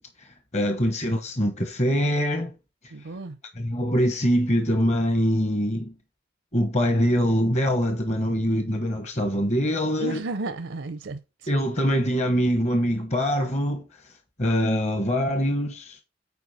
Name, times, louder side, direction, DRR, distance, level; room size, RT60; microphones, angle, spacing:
voice 1, 0.0-2.5 3.5-5.9 6.5-10.2 11.5-13.9 14.4-16.0, equal, 40° left, 1.0 m, -24 dB
voice 2, 2.9-3.4 10.0-11.5, right 3 dB, 80° right, 0.6 m, -33 dB
8.3 x 4.7 x 4.1 m
head